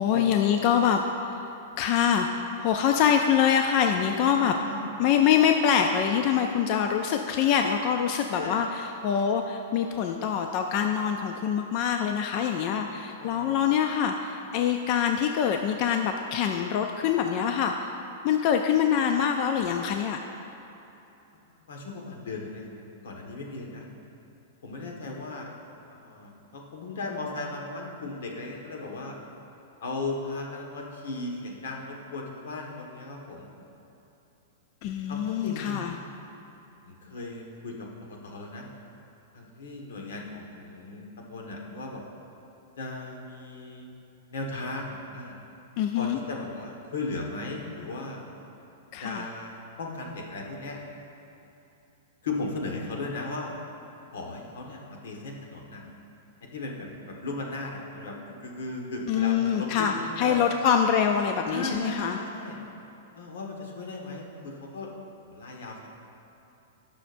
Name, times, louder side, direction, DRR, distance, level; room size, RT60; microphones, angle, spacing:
voice 1, 0.0-1.4 1.8-2.3 2.6-4.5 5.0-17.9 18.2-20.2 34.8-35.9 45.8-46.2 48.9-49.3 59.1-62.2, left 8 dB, 30° left, 4 dB, 0.3 m, -25 dB
voice 2, 4.3-4.9 8.3-8.5 13.2-13.6 21.7-23.9 24.6-25.5 25.9-29.1 29.8-33.5 35.1-36.0 36.8-38.7 39.3-42.0 42.8-43.9 44.3-45.3 45.9-48.2 49.0-50.8 52.2-53.5 54.1-55.8 56.5-58.1 58.4-60.4 61.5-62.6 63.1-64.9 65.3-65.9, left 2 dB, 75° left, 0 dB, 1.5 m, -36 dB
17.5 x 6.2 x 2.6 m, 3.0 s
supercardioid pair, 180°, 0 cm